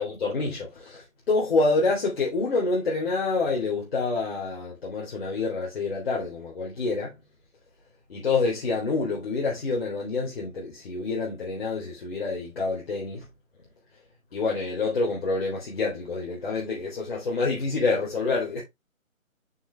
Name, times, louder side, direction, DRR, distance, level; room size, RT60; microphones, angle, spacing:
voice 1, 0.0-7.1 8.1-13.3 14.3-18.6, left 3 dB, 45° left, 3.8 m, -27 dB
8.5 x 5.6 x 3.4 m
figure-of-eight pair, 160°, 41 cm